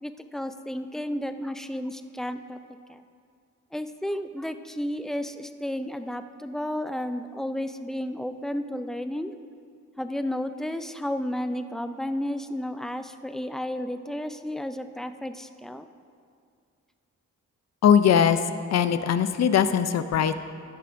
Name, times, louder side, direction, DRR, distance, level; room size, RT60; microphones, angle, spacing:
voice 1, 0.0-2.6 2.9-3.0 3.7-9.3 10.0-15.9, left 1 dB, ahead, 9 dB, 0.3 m, -32 dB
voice 2, 17.8-18.4 18.7-20.3, left 8 dB, 60° left, 11 dB, 0.5 m, -20 dB
14.0 x 10.5 x 2.6 m, 2.3 s
cardioid pair, 115°, 30 cm